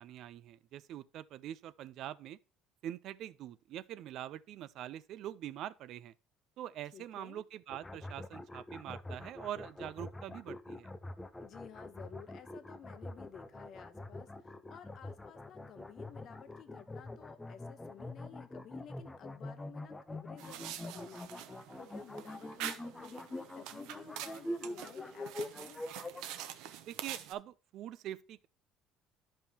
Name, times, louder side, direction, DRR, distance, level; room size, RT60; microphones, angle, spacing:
voice 1, 0.0-2.4 2.8-6.1 6.6-10.9 26.9-28.5, right 11 dB, 55° right, 0.4 m, -44 dB
voice 2, 6.9-7.4 11.4-21.3 21.8-25.8, left 8 dB, 40° left, 0.9 m, -54 dB
sound 1, 7.7-26.2, left 1 dB, 10° left, 0.5 m, -44 dB
sound 2, 20.4-27.3, right 11 dB, 80° right, 0.8 m, -46 dB
11.5 x 5.4 x 2.8 m
cardioid pair, 165°, 0 cm